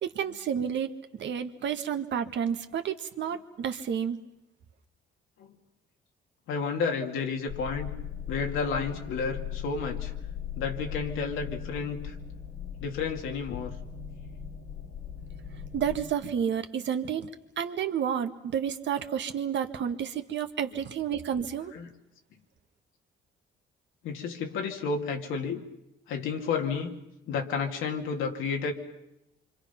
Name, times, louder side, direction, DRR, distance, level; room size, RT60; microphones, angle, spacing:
voice 1, 0.0-4.2 15.7-17.3 17.6-21.7, right 8 dB, 65° right, 7 dB, 1.6 m, -30 dB
voice 2, 6.5-7.9 8.3-10.1 10.6-12.2 12.8-13.7 21.7-21.9 24.0-25.6 26.1-27.0 27.3-28.7, left 5 dB, 90° left, 3 dB, 2.5 m, -31 dB
sound 1, 7.5-16.1, left 8 dB, 60° left, 2.2 m, -38 dB
26.5 x 25.5 x 5.8 m, 0.86 s
cardioid pair, 90°, 20 cm